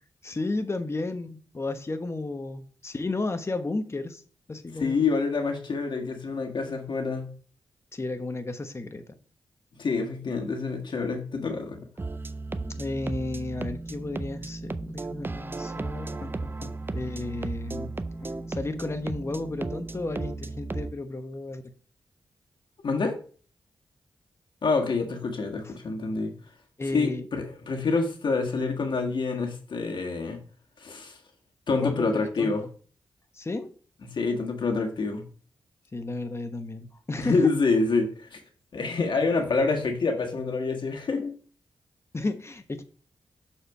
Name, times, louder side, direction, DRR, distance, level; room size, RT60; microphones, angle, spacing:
voice 1, 0.2-4.2 4.5-5.0 7.9-9.1 12.6-17.9 18.2-21.6 25.6-25.8 26.8-27.3 31.8-32.5 33.3-33.7 35.9-37.4 42.1-42.8, left 2 dB, 30° left, 9 dB, 0.9 m, -33 dB
voice 2, 4.8-7.3 9.8-11.8 22.8-23.2 24.6-26.3 26.9-30.4 30.8-31.1 31.7-32.6 34.0-35.2 37.2-38.4 38.7-41.4, left 4 dB, 65° left, 3 dB, 1.5 m, -27 dB
sound 1, 12.0-20.9, right 3 dB, 25° right, 0.4 m, -35 dB
6.7 x 4.3 x 4.6 m, 0.42 s
cardioid pair, 65°, 9 cm